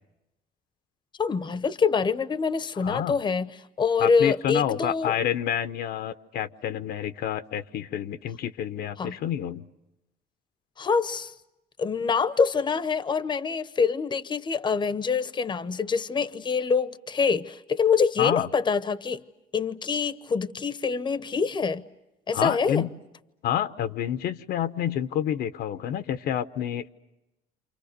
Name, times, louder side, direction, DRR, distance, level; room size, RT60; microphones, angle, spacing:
voice 1, 1.2-3.5 3.8-5.2 9.0-9.2 10.8-11.3 11.8-19.2 19.5-21.8 22.3-22.9, left 5 dB, 25° left, 0.9 m, -25 dB
voice 2, 2.8-3.1 4.0-9.6 18.2-18.5 22.3-22.9 23.4-26.9, left 10 dB, 70° left, 0.9 m, -28 dB
29.0 x 27.5 x 6.7 m
cardioid pair, 110°, 17 cm